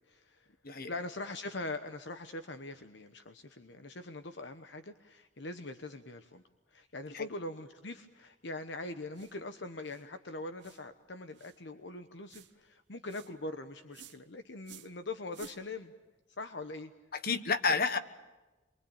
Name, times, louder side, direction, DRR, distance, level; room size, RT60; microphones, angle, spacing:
voice 1, 0.1-0.5 0.9-6.4 6.7-15.9 16.4-16.9, left 2 dB, 70° left, 9 dB, 1.1 m, -42 dB
sound 1, 9.1-9.4 9.8-10.1 10.6-10.8 11.3-11.6 12.3-12.5 13.1-13.3 13.9-14.2 14.6-14.9 15.3-15.6, right 7 dB, 70° right, 1.2 m, -53 dB
voice 2, 17.1-18.0, left 4 dB, 55° left, 11 dB, 1.4 m, -30 dB
27.5 x 23.5 x 8.8 m, 1.1 s
head